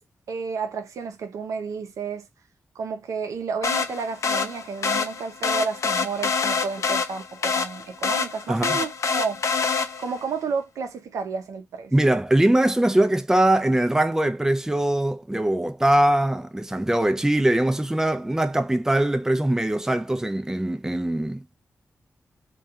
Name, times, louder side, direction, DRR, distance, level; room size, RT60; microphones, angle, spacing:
voice 1, 0.3-2.3 2.8-9.4 10.0-11.9, right 5 dB, 85° right, 0.5 m, -31 dB
sound 1, 3.6-10.2, left 5 dB, 70° left, 0.5 m, -26 dB
voice 2, 8.5-8.8 11.9-21.6, right 1 dB, 10° right, 0.4 m, -22 dB
2.3 x 2.3 x 2.7 m
cardioid pair, 50°, 5 cm